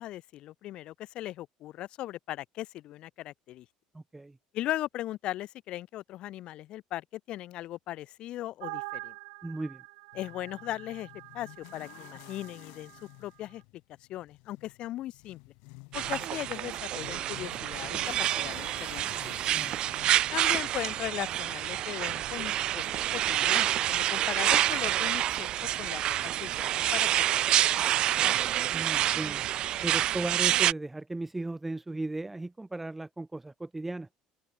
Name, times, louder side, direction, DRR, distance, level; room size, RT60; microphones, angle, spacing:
voice 1, 0.0-3.7 4.5-9.1 10.2-11.1 11.3-12.9 13.2-13.6 14.1-15.4 15.9-19.3 20.3-25.5 25.8-27.9 28.2-28.3, left 14 dB, 50° left, 0.6 m, -38 dB
voice 2, 3.9-4.4 9.4-9.8 19.5-20.1 28.7-29.4 29.8-34.1, right 2 dB, 10° right, 1.2 m, -36 dB
sound 1, 8.6-13.1, right 33 dB, 85° right, 2.3 m, -45 dB
sound 2, 10.1-27.4, left 33 dB, 75° left, 1.4 m, -53 dB
sound 3, 15.9-30.7, right 13 dB, 45° right, 0.5 m, -28 dB
open air
cardioid pair, 145°, 2 cm